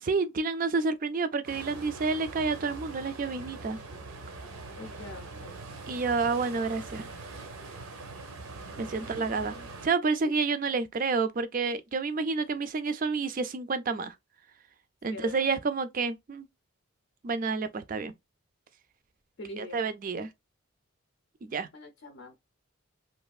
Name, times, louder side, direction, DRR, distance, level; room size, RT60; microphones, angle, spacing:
voice 1, 0.0-3.8 5.9-7.1 8.8-9.5 9.8-14.1 15.0-16.5 17.2-18.1 19.6-20.3 21.4-21.7, right 4 dB, 40° right, 0.3 m, -29 dB
sound 1, 1.4-9.9, right 3 dB, 85° right, 0.6 m, -43 dB
voice 2, 4.8-5.6 9.0-9.7 10.3-10.4 15.1-15.5 19.4-19.8 21.7-22.4, left 2 dB, 60° left, 0.5 m, -44 dB
3.1 x 2.4 x 2.3 m
head